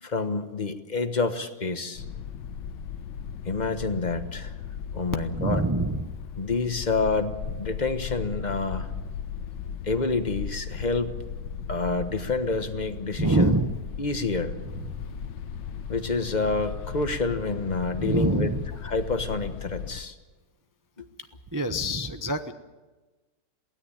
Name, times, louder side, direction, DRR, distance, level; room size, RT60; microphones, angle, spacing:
voice 1, 0.0-2.0 3.4-4.6 4.9-5.6 6.4-8.9 9.8-11.1 11.7-13.5 14.0-14.6 15.9-18.5 18.8-20.2 21.0-21.1, left 3 dB, 25° left, 8 dB, 1.2 m, -28 dB
sound 1, 1.9-20.0, left 7 dB, 80° left, 1.6 m, -37 dB
voice 2, 5.3-6.2 13.2-13.8 14.8-15.0 18.0-18.6 21.5-22.5, right 1 dB, 30° right, 7 dB, 0.3 m, -25 dB
23.0 x 17.0 x 8.9 m, 1.2 s
omnidirectional pair, 2.0 m